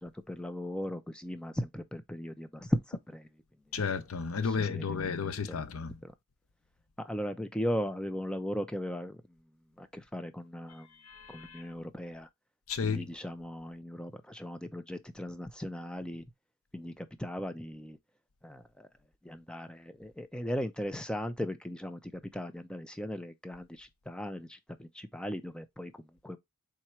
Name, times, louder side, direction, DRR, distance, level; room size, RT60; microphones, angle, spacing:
voice 1, 0.0-3.2 4.4-5.0 5.5-5.6 6.0-6.1 7.0-9.2 9.8-10.9 11.3-12.3 12.8-16.2 16.7-18.0 18.4-18.9 19.2-22.0 22.3-26.4, equal, 5° left, 0.4 m, -37 dB
voice 2, 3.7-6.0 11.0-11.6 12.7-13.1, left 5 dB, 80° left, 0.6 m, -33 dB
3.7 x 3.0 x 4.4 m
head